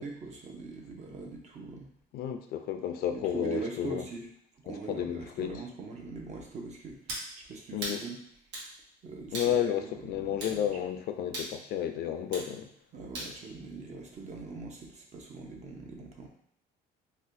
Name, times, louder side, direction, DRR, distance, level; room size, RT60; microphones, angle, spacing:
voice 1, 0.0-1.9 3.1-4.3 4.6-7.0 7.5-8.2 9.0-9.4 9.6-9.7 10.0-10.6 12.9-16.3, right 3 dB, 45° right, 0 dB, 0.6 m, -41 dB
voice 2, 2.1-4.0 4.7-5.5 7.7-8.0 9.3-12.7, left 10 dB, 65° left, 8 dB, 0.4 m, -32 dB
sound 1, 7.1-7.3 7.8-8.0 8.5-8.7 9.3-9.5 10.4-10.6 11.3-11.5 12.3-12.5 13.1-13.3, right 1 dB, 85° right, 1.0 m, -37 dB
4.1 x 2.2 x 2.6 m, 0.71 s
cardioid pair, 110°, 17 cm